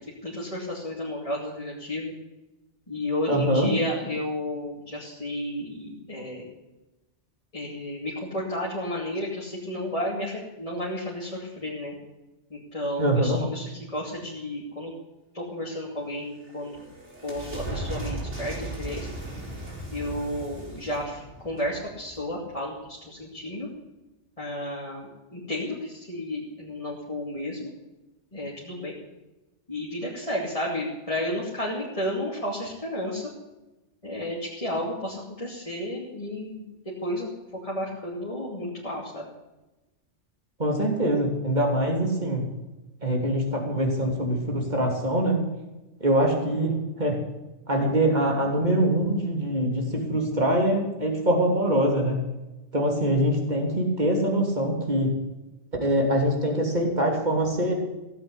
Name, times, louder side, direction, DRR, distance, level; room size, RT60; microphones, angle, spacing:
voice 1, 0.2-2.1 2.9-6.5 7.5-11.9 12.5-14.9 15.3-16.8 17.2-19.1 19.9-23.7 24.4-27.7 28.3-29.0 29.7-33.3 34.0-37.3 37.6-39.3, left 1 dB, 30° left, -6 dB, 2.8 m, -32 dB
voice 2, 3.3-3.7 13.0-13.4 40.6-42.4 43.0-45.4 46.0-47.2 47.7-52.2 52.7-55.1 55.8-57.7, right 1 dB, 40° right, 0 dB, 3.4 m, -24 dB
sound 1, 16.1-22.6, right 2 dB, 75° right, 5.2 m, -37 dB
16.5 x 8.2 x 8.3 m, 1.0 s
omnidirectional pair, 1.2 m